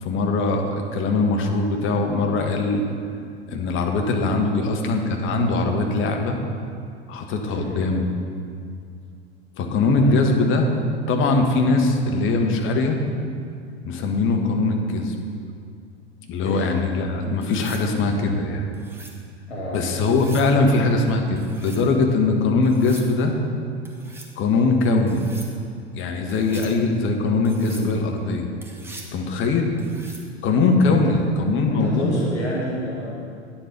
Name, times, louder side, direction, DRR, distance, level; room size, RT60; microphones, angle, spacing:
voice 1, 0.0-2.8 3.5-6.4 7.1-8.1 9.6-10.7 11.1-13.0 13.8-15.1 16.3-18.7 19.7-23.3 24.4-25.2 25.9-28.5 29.1-29.7 30.4-32.2, left 3 dB, 40° left, 3 dB, 1.3 m, -21 dB
sound 1, 17.4-17.9 18.7-19.2 20.0-20.5 21.4-21.8 22.6-23.1 23.8-24.3 25.1-25.5 26.3-26.7 27.4-27.9 28.6-29.1 29.8-30.3 32.2-32.5, right 1 dB, 5° right, 1.3 m, -42 dB
voice 2, 19.5-19.9 30.8-31.2 31.7-33.2, equal, 80° left, -5 dB, 1.6 m, -30 dB
9.7 x 7.3 x 5.2 m, 2.4 s
figure-of-eight pair, 85°, 33 cm